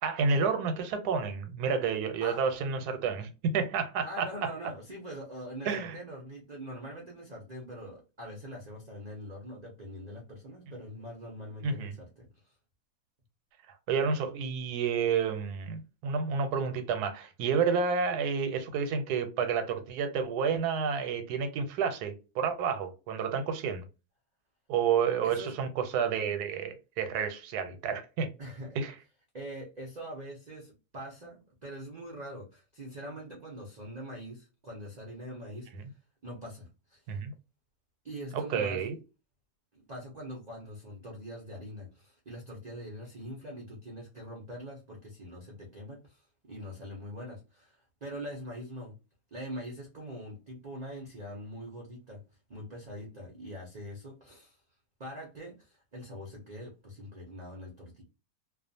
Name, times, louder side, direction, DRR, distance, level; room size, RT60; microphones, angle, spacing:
voice 1, 0.0-4.3 5.7-6.0 11.6-11.9 13.9-23.8 24.7-28.3 28.8-28.9 37.1-37.3 38.3-39.0, right 6 dB, 90° right, 1.1 m, -30 dB
voice 2, 4.0-12.5 25.2-25.5 28.4-28.8 29.3-37.1 38.0-38.8 39.7-49.0 49.3-52.2 52.5-54.6 55.0-58.0, equal, 55° right, 0.4 m, -43 dB
2.4 x 2.4 x 2.6 m
omnidirectional pair, 1.7 m